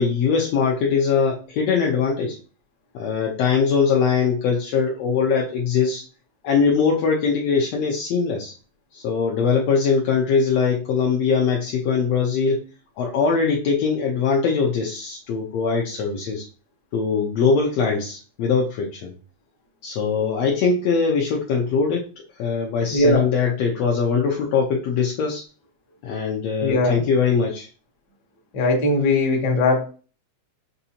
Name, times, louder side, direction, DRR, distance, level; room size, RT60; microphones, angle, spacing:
voice 1, 0.0-2.4 2.9-6.0 6.4-8.5 8.9-12.6 13.0-16.5 16.9-19.1 19.8-22.0 22.4-25.4 26.0-27.7, left 5 dB, 75° left, -1 dB, 1.7 m, -21 dB
voice 2, 22.9-23.3 26.6-27.0 28.5-29.8, left 2 dB, 50° left, -1 dB, 1.4 m, -19 dB
6.8 x 2.7 x 2.8 m, 0.37 s
omnidirectional pair, 3.3 m